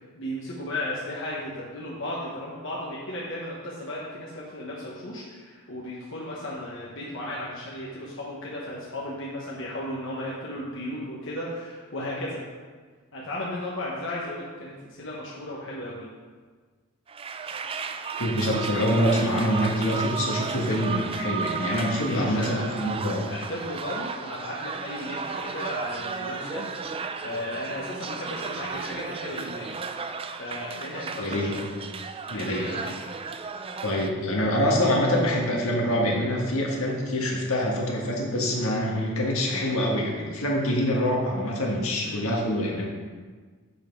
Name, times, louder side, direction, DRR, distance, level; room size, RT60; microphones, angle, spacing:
voice 1, 0.1-12.4 13.1-16.1 22.0-22.8 23.2-29.8 30.4-31.8 32.3-33.0 42.0-42.2, left 1 dB, 65° left, -5 dB, 1.2 m, -35 dB
sound 1, 17.1-34.1, right 5 dB, 25° right, 0.3 m, -34 dB
voice 2, 18.2-23.2 31.2-31.5 32.3-32.6 33.8-42.8, equal, 85° left, -1 dB, 1.7 m, -25 dB
7.6 x 5.7 x 4.6 m, 1.5 s
head